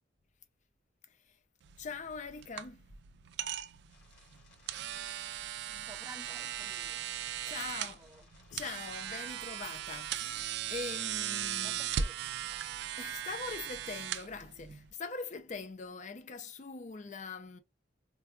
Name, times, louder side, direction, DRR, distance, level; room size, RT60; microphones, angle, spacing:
sound 1, 1.6-14.9, right 10 dB, 65° right, 0.3 m, -38 dB
voice 1, 1.8-2.8 7.4-8.0 8.5-11.8 13.0-17.6, left 4 dB, 40° left, 0.5 m, -42 dB
sound 2, 3.9-13.9, left 4 dB, 90° left, 2.7 m, -64 dB
voice 2, 5.8-7.0 7.4-8.3 11.5-12.2, right 2 dB, 15° right, 0.5 m, -53 dB
4.5 x 2.2 x 2.3 m
head